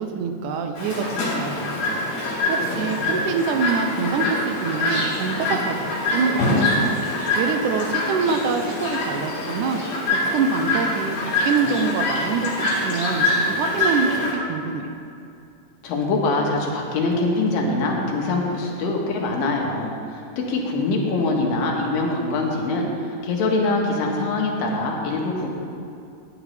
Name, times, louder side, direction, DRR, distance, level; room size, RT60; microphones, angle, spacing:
voice 1, 0.0-6.9 7.4-9.8 10.1-14.1 14.5-14.9, right 5 dB, 75° right, 5 dB, 2.1 m, -25 dB
Chirp tweet, 0.8-14.3, left 2 dB, 65° left, 4.6 m, -24 dB
voice 2, 15.8-22.9 23.2-25.5, left 2 dB, 85° left, 0 dB, 3.2 m, -23 dB
16.0 x 10.0 x 3.3 m, 2.5 s
omnidirectional pair, 3.9 m